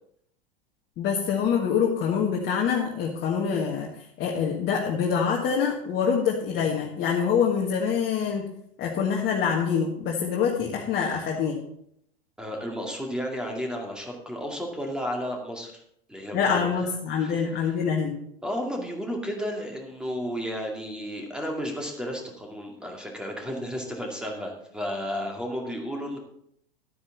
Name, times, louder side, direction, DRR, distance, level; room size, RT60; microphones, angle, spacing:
voice 1, 1.0-3.9 4.2-8.5 8.8-11.6 16.3-18.1, left 6 dB, 35° left, -1 dB, 1.6 m, -25 dB
voice 2, 12.4-15.8 16.1-16.6 17.2-17.7 18.4-26.2, equal, 5° right, 1 dB, 2.3 m, -33 dB
12.0 x 9.6 x 4.0 m, 0.71 s
figure-of-eight pair, 90°, 30 cm